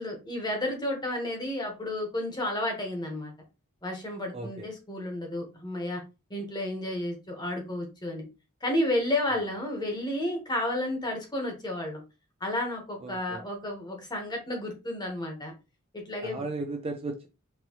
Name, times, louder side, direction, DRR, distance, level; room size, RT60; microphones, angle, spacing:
voice 1, 0.0-3.3 3.8-6.0 6.3-8.3 8.6-12.0 12.4-15.5 15.9-16.4, left 1 dB, 20° left, 1.2 m, -31 dB
voice 2, 4.3-4.7 9.3-9.5 13.0-13.4 16.2-17.3, right 2 dB, 25° right, 0.5 m, -36 dB
4.5 x 3.0 x 3.0 m
head